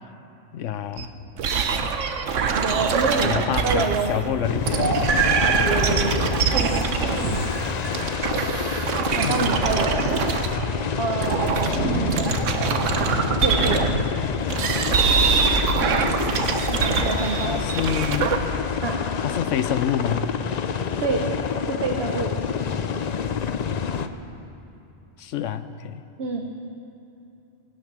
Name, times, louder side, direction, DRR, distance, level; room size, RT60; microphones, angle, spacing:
voice 1, 0.5-1.1 1.8-1.9 3.2-5.0 5.7-6.3 7.9-8.1 9.2-9.6 11.7-12.3 13.7-14.4 17.4-18.4 19.2-20.3 25.2-26.0, left 9 dB, 85° left, 12 dB, 1.0 m, -29 dB
sound 1, 1.0-1.1 1.4-4.2 4.7-10.8 11.1-14.0 14.5-18.4, right 5 dB, 90° right, 1.2 m, -23 dB
voice 2, 2.5-4.1 5.4-6.4 7.0-7.1 9.1-10.1 11.0-12.3 13.4-13.9 16.7-17.6 18.8-19.0 21.0-21.3 21.8-22.4 26.2-26.4, right 4 dB, 60° right, 2 dB, 1.2 m, -27 dB
sound 2, 2.6-17.5, left 1 dB, 10° left, 1.0 m, -42 dB
sound 3, 4.4-24.1, left 7 dB, 50° left, 0.5 m, -28 dB
17.5 x 12.0 x 6.1 m, 2.7 s
omnidirectional pair, 1.3 m